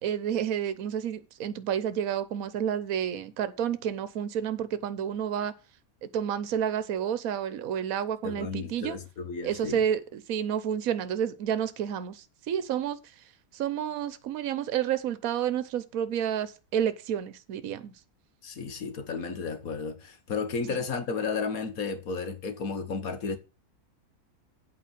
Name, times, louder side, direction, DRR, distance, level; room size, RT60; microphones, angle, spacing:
voice 1, 0.0-5.5 6.1-9.0 9.4-13.0 13.5-17.9 20.7-20.8, right 9 dB, 70° right, 1.3 m, -30 dB
voice 2, 8.2-9.8 18.4-23.4, left 5 dB, 70° left, 1.8 m, -33 dB
8.4 x 5.2 x 7.2 m
omnidirectional pair, 1.6 m